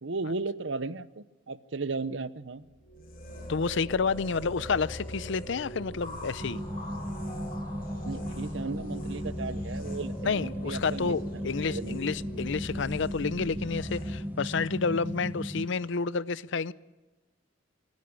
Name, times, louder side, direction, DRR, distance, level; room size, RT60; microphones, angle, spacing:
voice 1, 0.0-2.7 8.0-12.0, right 3 dB, 65° right, 0.8 m, -36 dB
sound 1, 2.7-14.2, equal, 30° left, 4.2 m, -41 dB
sound 2, 2.9-14.4, equal, 45° left, 2.9 m, -55 dB
voice 2, 3.5-6.6 10.2-16.7, left 5 dB, 65° left, 0.6 m, -30 dB
sound 3, 6.4-15.7, equal, 10° right, 1.1 m, -36 dB
25.5 x 11.0 x 9.9 m
head